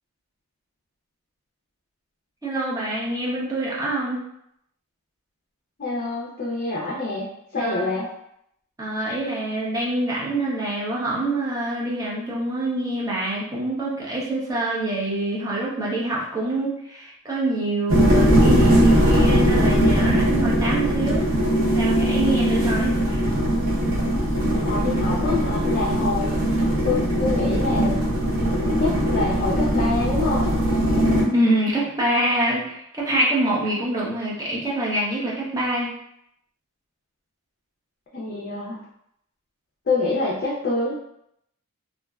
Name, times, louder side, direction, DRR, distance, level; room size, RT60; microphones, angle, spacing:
voice 1, 2.4-4.2 7.5-7.9 8.8-21.2 21.7-23.2 31.3-35.9, right 1 dB, 15° right, -6 dB, 0.6 m, -25 dB
voice 2, 5.8-7.3 7.5-8.1 24.6-27.9 28.4-30.5 38.1-38.8 39.9-41.0, left 3 dB, 45° left, -5 dB, 0.4 m, -26 dB
sound 1, 17.9-31.2, equal, 65° right, 0.7 m, -20 dB
2.6 x 2.1 x 2.3 m, 0.75 s
head